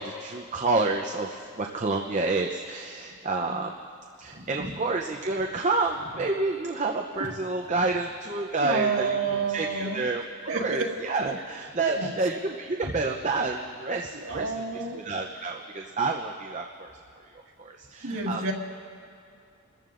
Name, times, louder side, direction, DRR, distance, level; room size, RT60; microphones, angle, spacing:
voice 1, 0.0-3.7 4.2-16.9 17.2-17.3 17.6-18.4, right 3 dB, 35° right, 1 dB, 0.6 m, -29 dB
voice 2, 4.3-4.7 8.6-10.1 10.5-10.9 12.0-12.1 14.1-15.0 18.0-18.5, right 4 dB, 85° right, -2 dB, 1.8 m, -29 dB
29.0 x 14.5 x 2.5 m, 2.5 s
head